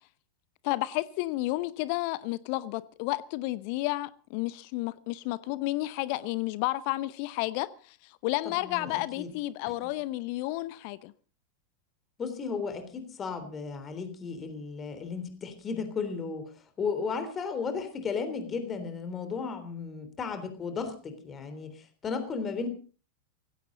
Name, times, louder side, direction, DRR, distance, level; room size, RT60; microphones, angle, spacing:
voice 1, 0.6-11.1, left 18 dB, 45° left, 0.7 m, -31 dB
voice 2, 8.5-9.3 12.2-16.5 16.8-22.7, left 5 dB, 25° left, 3.5 m, -34 dB
18.0 x 16.0 x 4.0 m
figure-of-eight pair, 90°, 0 cm